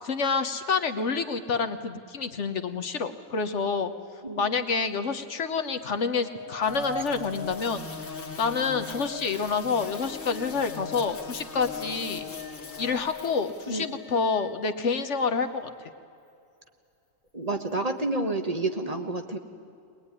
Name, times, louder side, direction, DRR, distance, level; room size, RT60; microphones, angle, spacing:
voice 1, 0.0-3.9 4.4-8.1 8.4-12.3 12.8-15.7, left 5 dB, 65° left, 8 dB, 1.4 m, -28 dB
sound 1, 5.5-15.4 17.7-17.8, left 10 dB, 45° left, 1.7 m, -44 dB
sound 2, 6.4-8.7, right 3 dB, 55° right, 1.4 m, -41 dB
sound 3, 6.6-13.7, left 4 dB, 80° left, 2.3 m, -41 dB
voice 2, 17.3-19.4, right 2 dB, 30° right, 5 dB, 1.3 m, -29 dB
21.5 x 21.0 x 9.8 m, 2.5 s
omnidirectional pair, 1.3 m